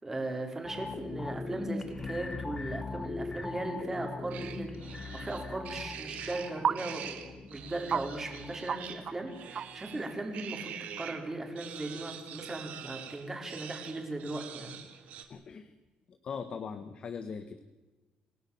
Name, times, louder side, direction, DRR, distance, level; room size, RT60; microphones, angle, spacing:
voice 1, 0.0-14.8, right 2 dB, 15° right, 2 dB, 4.3 m, -38 dB
sound 1, 0.6-10.0 10.3-10.4, left 3 dB, 20° left, 1.2 m, -41 dB
sound 2, 4.3-11.2 11.6-15.2, right 9 dB, 70° right, 2.9 m, -45 dB
sound 3, 4.4-4.5 6.6-6.8 7.3-7.4 7.9-8.0 8.7-8.8 9.0-9.2 9.6-9.8, right 7 dB, 40° right, 0.9 m, -30 dB
voice 2, 15.3-15.7 16.1-17.6, left 6 dB, 40° left, 9 dB, 1.4 m, -40 dB
28.0 x 18.0 x 7.2 m, 1.2 s
cardioid pair, 160°, 3 cm